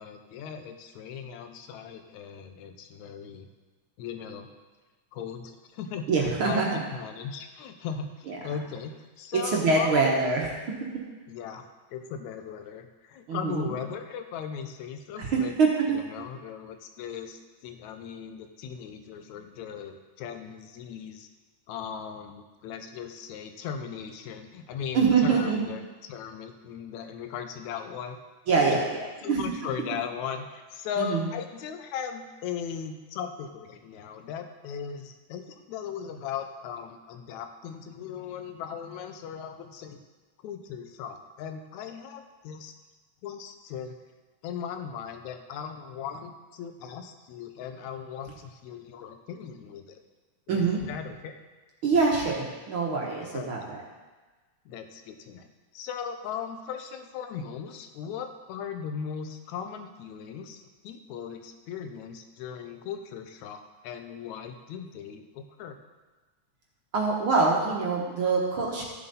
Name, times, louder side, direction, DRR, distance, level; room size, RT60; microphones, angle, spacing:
voice 1, 0.0-3.5 4.0-4.5 5.1-10.1 11.3-11.6 11.9-15.5 15.9-21.3 21.7-25.8 26.1-28.2 28.5-28.8 29.2-40.0 40.4-42.7 43.2-44.0 44.4-50.0 50.5-51.4 53.3-53.5 54.7-55.5 55.7-65.8, left 7 dB, 75° left, 7 dB, 2.0 m, -38 dB
voice 2, 6.1-6.8 8.3-8.4 9.4-10.4 13.3-13.7 15.2-16.0 24.9-25.7 28.5-28.9 29.3-29.4 31.0-31.2 50.5-50.8 51.8-52.4 52.7-53.8 66.9-68.8, right 4 dB, 55° right, -2 dB, 1.6 m, -24 dB
15.0 x 7.2 x 4.1 m, 1.3 s
omnidirectional pair, 3.5 m